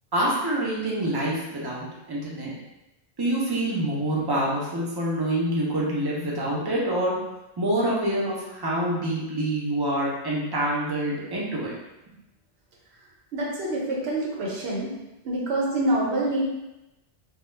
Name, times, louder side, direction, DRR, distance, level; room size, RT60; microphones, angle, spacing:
voice 1, 0.1-2.5 3.2-7.2 7.6-11.7, right 1 dB, 30° right, -5 dB, 0.4 m, -26 dB
voice 2, 13.3-14.9 15.2-16.4, right 1 dB, 80° right, -3 dB, 1.0 m, -26 dB
2.3 x 2.1 x 3.1 m, 0.96 s
omnidirectional pair, 1.1 m